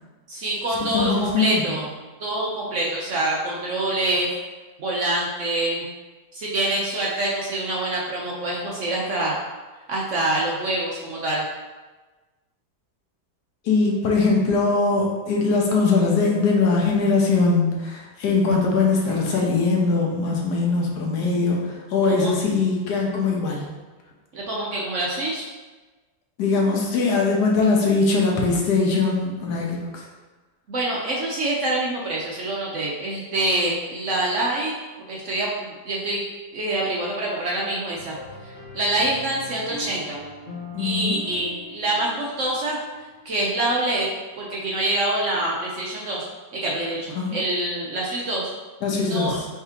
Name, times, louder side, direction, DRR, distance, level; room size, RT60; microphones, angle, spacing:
voice 1, 0.3-1.9 2.2-4.3 4.8-5.8 6.3-9.3 9.9-11.4 22.1-22.3 24.3-25.4 30.7-34.7 35.1-36.2 36.5-38.2 38.7-40.2 40.8-42.8 43.2-44.1 44.4-46.3 46.5-48.5 49.0-49.4, right 1 dB, 60° right, -4 dB, 0.8 m, -25 dB
voice 2, 0.9-1.8 13.6-23.7 26.4-30.0 40.7-41.2 47.1-47.4 48.8-49.5, left 4 dB, 80° left, -1 dB, 1.4 m, -21 dB
sound 1, 38.0-43.5, left 2 dB, 30° left, 1.2 m, -41 dB
4.8 x 3.5 x 2.7 m, 1.2 s
omnidirectional pair, 1.8 m